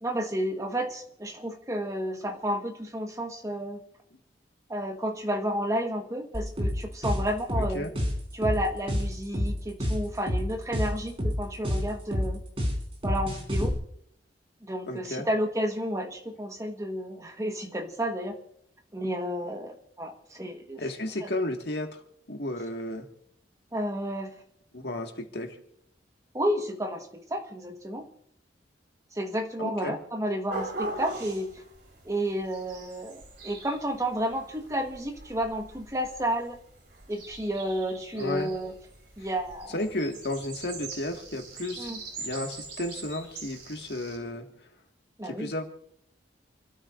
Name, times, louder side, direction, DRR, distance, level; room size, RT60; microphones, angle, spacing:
voice 1, 0.0-3.8 4.7-7.9 8.3-12.4 13.0-13.7 14.6-18.3 18.9-20.8 21.2-21.3 23.7-24.4 26.3-28.1 29.1-31.6 32.0-36.6 37.1-38.7 39.2-39.8 41.8-42.0 45.2-45.5, equal, 20° right, 4 dB, 1.3 m, -31 dB
sound 1, 6.3-13.7, equal, 35° right, 4.4 m, -28 dB
voice 2, 14.8-15.3 20.8-22.0 22.3-23.1 24.7-25.6 29.6-30.0 38.2-38.5 39.7-41.9 42.2-44.5 45.2-45.6, left 1 dB, 70° left, 3 dB, 1.8 m, -33 dB
sound 2, 30.5-44.2, right 3 dB, 75° right, 4.6 m, -42 dB
28.5 x 13.0 x 2.6 m, 0.70 s
head